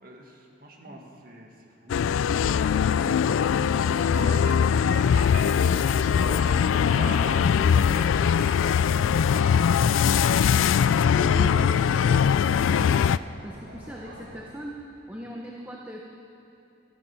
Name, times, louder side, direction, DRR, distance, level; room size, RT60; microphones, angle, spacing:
voice 1, 0.0-2.5 2.9-3.6 4.1-6.5 6.9-8.7 9.1-10.0 10.8-11.5 15.1-15.3, right 1 dB, 50° right, 1 dB, 1.8 m, -42 dB
sound 1, 1.9-13.2, left 7 dB, 85° left, 0.3 m, -21 dB
sound 2, 2.8-14.6, equal, 85° right, 3.7 m, -44 dB
voice 2, 11.2-12.0 12.3-13.1 13.4-16.0, right 1 dB, 10° right, -1 dB, 0.9 m, -39 dB
14.0 x 13.5 x 5.8 m, 2.8 s
head